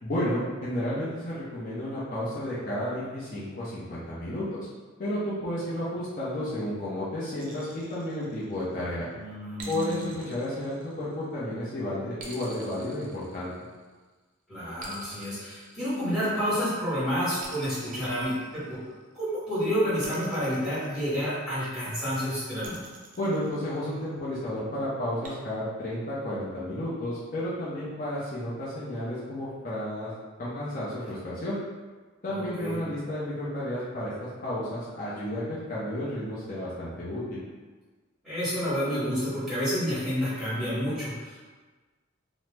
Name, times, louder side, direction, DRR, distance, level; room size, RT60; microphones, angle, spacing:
voice 1, 0.0-4.7 5.0-9.1 9.7-13.5 23.2-30.1 30.4-31.6 32.2-37.4, left 1 dB, 45° left, -9 dB, 0.6 m, -32 dB
sound 1, 7.4-8.8 9.6-11.4 12.2-13.9 14.8-16.5 17.4-19.0 20.0-21.6 22.6-24.1 25.2-25.3, right 3 dB, 40° right, 0.5 m, -47 dB
voice 2, 9.1-10.1 14.5-18.8 19.1-22.8 32.3-32.8 38.2-41.5, equal, 5° right, -12 dB, 1.5 m, -29 dB
2.9 x 2.0 x 3.3 m, 1.3 s
head